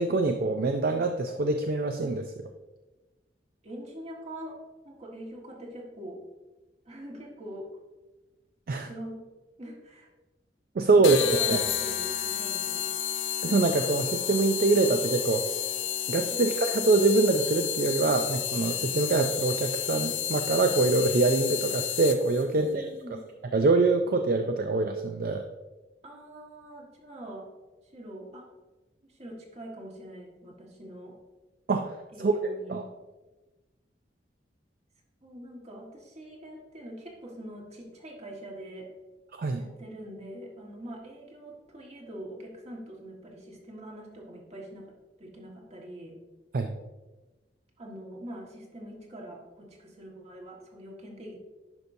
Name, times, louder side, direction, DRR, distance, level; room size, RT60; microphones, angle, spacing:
voice 1, 0.0-2.3 8.7-8.9 10.8-11.2 11.5-11.6 13.4-15.4 16.1-22.8 23.5-25.5 31.7-32.3 32.7-32.8 39.3-39.6 46.5-46.8, right 3 dB, 55° right, 6 dB, 0.4 m, -24 dB
voice 2, 3.6-4.6 4.8-6.2 6.8-7.7 8.8-9.2 9.6-10.1 11.0-12.9 16.3-16.4 22.5-23.2 26.0-27.5 27.9-28.5 29.0-31.2 32.1-32.7 35.2-38.9 39.5-44.9 45.2-46.2 47.8-51.4, right 1 dB, 35° right, -1 dB, 1.5 m, -43 dB
sound 1, 11.0-22.4, left 10 dB, 85° left, 0.5 m, -31 dB
10.5 x 5.3 x 2.6 m, 1.1 s
head